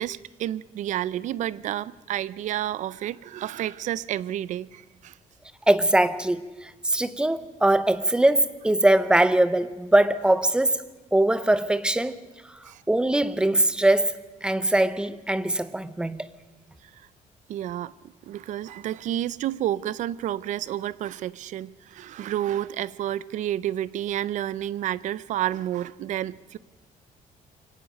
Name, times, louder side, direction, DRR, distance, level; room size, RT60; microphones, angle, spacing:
voice 1, 0.0-5.1 12.7-12.8 17.5-17.9 18.2-26.6, right 12 dB, 60° right, 0.6 m, -30 dB
voice 2, 5.7-10.8 11.1-12.2 12.9-16.3, right 1 dB, 5° right, 0.7 m, -22 dB
23.5 x 17.5 x 6.5 m
cardioid pair, 170°, 14 cm